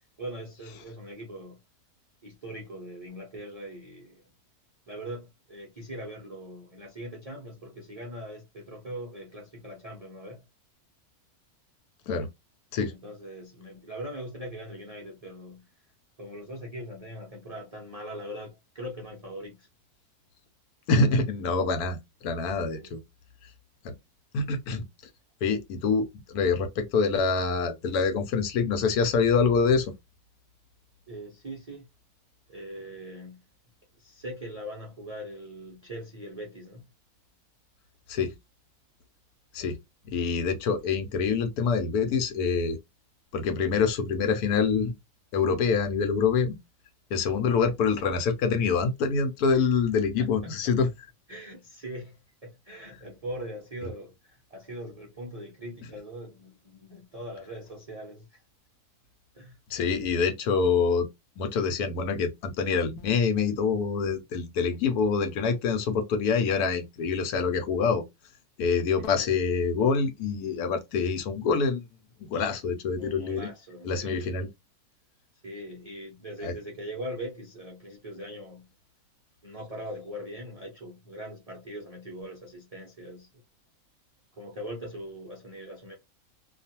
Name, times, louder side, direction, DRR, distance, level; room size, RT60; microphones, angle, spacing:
voice 1, 0.2-1.6 2.2-4.2 4.9-10.4 12.9-15.7 16.2-19.7 22.6-23.0 31.1-31.9 32.5-33.4 34.0-36.8 49.5-49.7 50.2-50.7 51.3-52.1 52.4-58.4 59.3-59.6 69.0-69.4 73.0-74.4 75.4-78.7 79.4-83.3 84.3-85.9, equal, 45° right, 0.5 m, -41 dB
voice 2, 20.9-22.0 22.2-23.0 23.8-23.9 24.3-24.8 25.4-29.9 38.1-38.3 39.5-39.8 40.1-42.8 43.3-44.9 45.3-46.6 47.1-50.9 59.7-61.1 61.4-68.0 68.6-71.8 72.2-73.5 73.8-74.5 76.4-76.5, left 5 dB, 80° left, 1.1 m, -26 dB
2.4 x 2.4 x 2.7 m
omnidirectional pair, 1.6 m